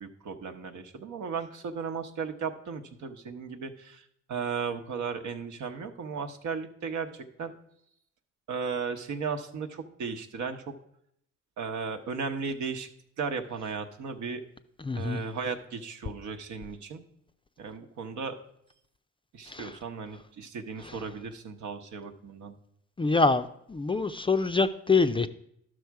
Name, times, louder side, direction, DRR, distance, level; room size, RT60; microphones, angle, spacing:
voice 1, 0.0-4.0 4.3-7.5 8.5-10.6 11.6-12.9 13.2-14.4 15.0-17.0 17.6-18.4 19.3-22.5, right 5 dB, 75° right, 5 dB, 1.0 m, -35 dB
voice 2, 14.8-15.2 19.5-19.8 20.8-21.0 23.0-25.3, left 4 dB, 20° left, 9 dB, 0.4 m, -26 dB
12.0 x 6.3 x 4.6 m, 0.73 s
cardioid pair, 90°, 30 cm